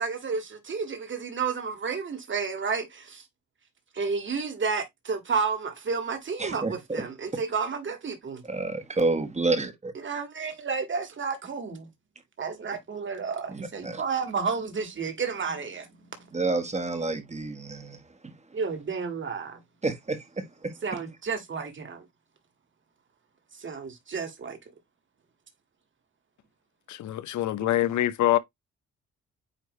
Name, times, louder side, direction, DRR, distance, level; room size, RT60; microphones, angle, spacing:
voice 1, 0.0-3.2 3.9-8.4 10.0-11.9 12.4-16.3 18.5-19.6 20.8-22.1 23.5-24.6 27.6-27.7, right 5 dB, 40° right, 2.2 m, -31 dB
voice 2, 6.4-7.0 8.4-9.9 13.5-14.0 16.3-18.3 19.8-20.8, right 3 dB, 20° right, 1.5 m, -29 dB
voice 3, 26.9-28.4, left 13 dB, 70° left, 0.8 m, -25 dB
9.0 x 3.2 x 3.2 m
cardioid pair, 90°, 30 cm